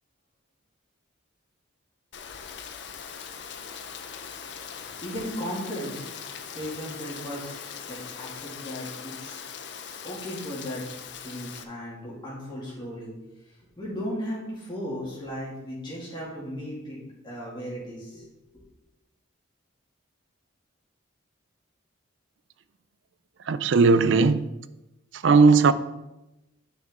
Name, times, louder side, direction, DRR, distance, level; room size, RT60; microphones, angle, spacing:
Rain, 2.1-11.6, left 7 dB, 55° left, 0.6 m, -40 dB
voice 1, 5.0-6.1 6.5-9.4 10.0-10.8 11.2-13.1 13.8-18.3, equal, 25° left, 2.6 m, -36 dB
voice 2, 23.5-24.5 25.1-25.7, right 4 dB, 65° right, 0.4 m, -18 dB
9.3 x 5.4 x 3.8 m
head